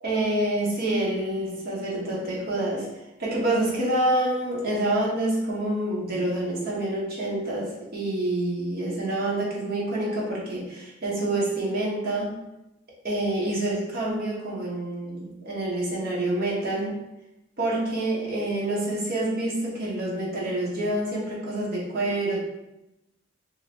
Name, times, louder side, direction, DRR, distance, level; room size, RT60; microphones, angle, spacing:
voice 1, 0.0-2.9 3.2-12.4 13.0-17.0 17.6-22.4, right 1 dB, 55° right, -5 dB, 1.0 m, -27 dB
3.2 x 2.8 x 2.9 m, 0.92 s
head